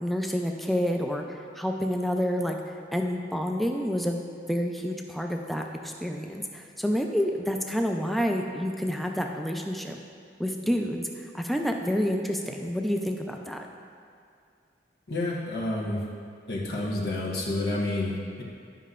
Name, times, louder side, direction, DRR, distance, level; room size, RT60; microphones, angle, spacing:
voice 1, 0.0-2.6 2.9-4.2 4.5-10.0 10.4-13.7, equal, ahead, 2 dB, 0.4 m, -28 dB
voice 2, 15.1-16.0 16.5-18.4, left 2 dB, 70° left, -4 dB, 1.1 m, -29 dB
11.0 x 5.5 x 2.5 m, 2.3 s
head